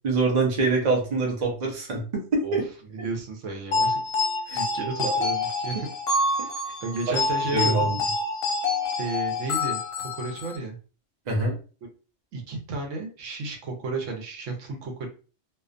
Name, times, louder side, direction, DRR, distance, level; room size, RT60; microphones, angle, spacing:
voice 1, 0.0-2.0 2.3-2.7 3.0-3.1 4.5-4.6 6.4-6.5 7.1-7.2 7.5-8.0 11.3-11.6, right 3 dB, 40° right, -1 dB, 0.8 m, -24 dB
voice 2, 2.9-4.0 4.5-5.9 6.3-6.5 6.8-7.9 9.0-10.8 12.3-15.1, right 3 dB, 90° right, 2 dB, 1.1 m, -33 dB
sound 1, 3.7-10.6, left 3 dB, 60° left, 0.8 m, -27 dB
2.4 x 2.3 x 2.4 m, 0.36 s
omnidirectional pair, 1.3 m